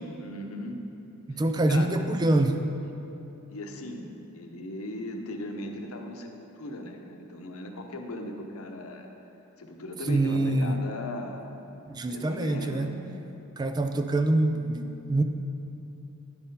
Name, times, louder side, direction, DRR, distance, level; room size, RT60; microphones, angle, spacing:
voice 1, 0.2-0.8 1.3-1.4 1.7-2.0 2.8-2.9 3.5-9.1 9.6-11.6 12.1-13.0, left 1 dB, 85° left, 4 dB, 0.8 m, -38 dB
voice 2, 1.3-2.6 10.1-10.8 11.9-12.9 13.6-15.2, right 2 dB, 20° right, 7 dB, 0.3 m, -25 dB
10.0 x 4.3 x 5.3 m, 2.9 s
head